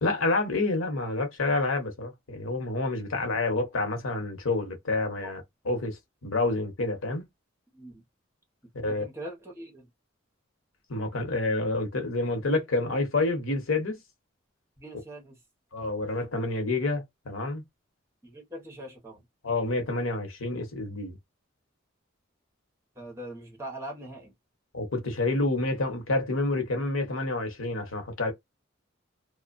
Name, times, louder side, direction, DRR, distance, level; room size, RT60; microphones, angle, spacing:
voice 1, 0.0-7.3 8.7-9.0 10.9-14.0 15.7-17.6 19.4-21.2 24.7-28.3, left 2 dB, 85° left, 1.1 m, -28 dB
voice 2, 8.9-9.9 14.8-15.4 18.2-19.2 23.0-24.3, right 1 dB, 15° right, 1.1 m, -41 dB
2.6 x 2.3 x 2.5 m
head